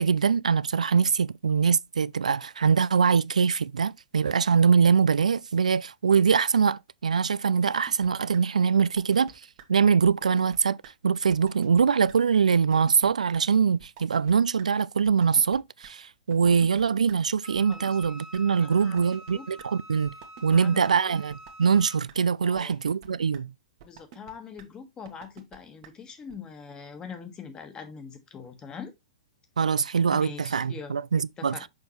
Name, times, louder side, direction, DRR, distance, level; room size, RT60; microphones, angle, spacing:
voice 1, 0.0-9.3 9.7-10.8 11.0-20.1 20.4-23.5 29.6-31.6, right 6 dB, 80° right, 0.4 m, -23 dB
sound 1, 7.7-8.1 8.3-8.4 8.8-9.3 9.6-9.7 10.0-10.6 10.8-10.9 11.3-11.8 12.1-12.2 12.6-13.1 13.3-13.4 13.8-14.3 14.6-14.7 15.0-15.6 15.8-15.9 16.3-17.1 17.5-18.4 18.8-19.3 19.6-19.7 20.0-20.6 20.8-20.9 21.3-21.8 22.1-22.2 22.5-23.1 23.3-23.4 23.8-24.3 24.6-24.7 25.1-25.6 25.8-25.9 26.3-26.4, right 9 dB, 50° right, 1.5 m, -47 dB
Wind instrument woodwind instrument, 17.4-22.0, right 1 dB, 65° left, 2.0 m, -47 dB
voice 2, 18.6-19.4 20.5-21.2 22.4-22.7 23.8-28.9 30.1-31.0 31.4-31.6, left 6 dB, 20° left, 1.5 m, -43 dB
6.5 x 5.1 x 3.1 m
figure-of-eight pair, 115°, 4 cm